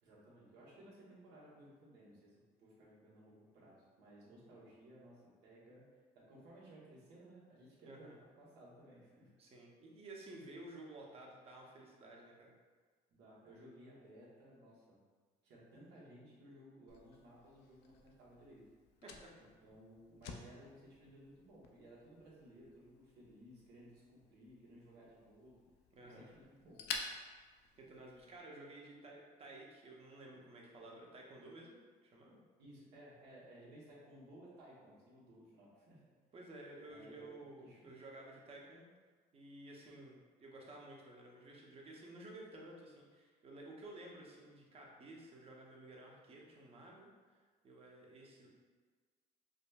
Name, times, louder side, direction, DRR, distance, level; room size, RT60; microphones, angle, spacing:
voice 1, 0.0-9.3 13.1-15.0 15.4-18.6 19.6-25.6 26.0-26.9 32.6-36.0 36.9-37.9, right 1 dB, 80° right, -6 dB, 1.1 m, -58 dB
voice 2, 7.8-8.2 9.4-12.5 19.0-19.7 25.9-26.3 27.8-32.4 36.3-38.9 39.3-48.5, right 2 dB, 35° right, -2 dB, 0.7 m, -54 dB
Fire, 16.9-28.4, left 5 dB, 80° left, 0.4 m, -52 dB
4.9 x 2.1 x 2.3 m, 1.4 s
cardioid pair, 110°, 17 cm